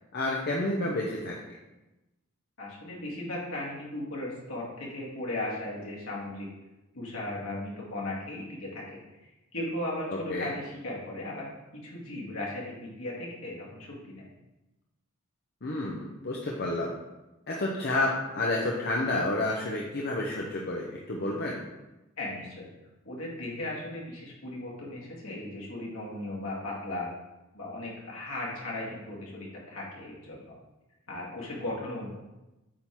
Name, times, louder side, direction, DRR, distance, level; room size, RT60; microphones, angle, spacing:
voice 1, 0.1-1.4 10.1-10.5 15.6-16.9 17.5-21.6, left 2 dB, 50° left, -2 dB, 0.8 m, -30 dB
voice 2, 2.6-6.5 6.9-14.3 22.2-22.7 23.0-27.1 27.5-30.5 31.1-32.1, left 1 dB, 65° left, -4 dB, 2.2 m, -37 dB
8.6 x 3.8 x 4.5 m, 1.0 s
head